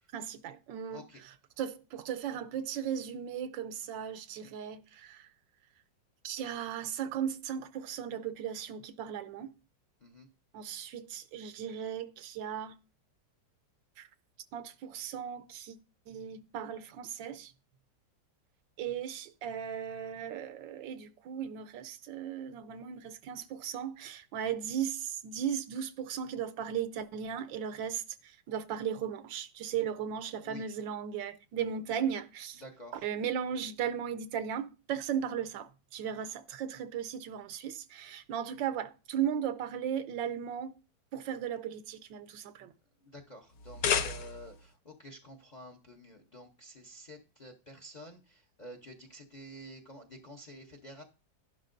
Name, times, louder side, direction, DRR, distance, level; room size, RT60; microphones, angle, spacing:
voice 1, 0.1-5.3 6.2-9.5 10.5-12.7 14.0-14.1 14.5-15.8 16.1-17.5 18.8-32.6 33.0-40.7 41.1-42.7, right 8 dB, 85° right, 1.4 m, -36 dB
voice 2, 0.9-1.2 10.0-10.3 29.8-29.9 30.4-30.7 32.6-33.1 43.0-51.0, equal, 40° left, 0.6 m, -50 dB
sound 1, 43.5-44.7, left 7 dB, 70° left, 1.4 m, -31 dB
11.5 x 11.0 x 2.6 m
omnidirectional pair, 2.0 m